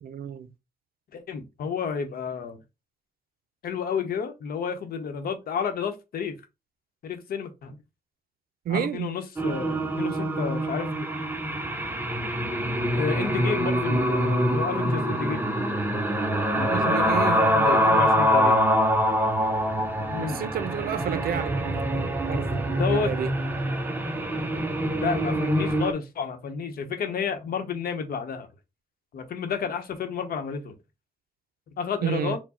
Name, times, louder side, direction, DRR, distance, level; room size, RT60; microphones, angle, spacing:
voice 1, 0.0-0.5 8.7-9.1 16.7-18.0 20.2-23.3 32.0-32.4, right 9 dB, 85° right, 0.5 m, -31 dB
voice 2, 1.1-2.6 3.6-6.3 7.0-7.8 8.7-10.9 12.9-15.5 16.6-18.7 20.1-20.4 22.7-23.1 25.0-28.5 29.1-30.7 31.8-32.4, left 6 dB, 90° left, 0.9 m, -31 dB
sound 1, 9.4-25.9, equal, 15° right, 0.6 m, -25 dB
4.6 x 2.2 x 4.2 m
wide cardioid pair, 150°, 15 cm